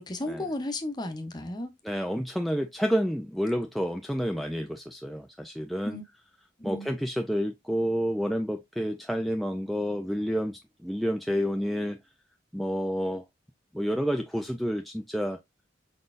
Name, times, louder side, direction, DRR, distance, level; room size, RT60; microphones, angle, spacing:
voice 1, 0.0-1.7 5.8-6.0 6.6-6.9, left 2 dB, 20° left, 0.9 m, -34 dB
voice 2, 1.8-6.0 6.6-12.0 12.5-13.2 13.7-15.4, equal, ahead, 0.3 m, -29 dB
5.2 x 4.1 x 2.4 m
head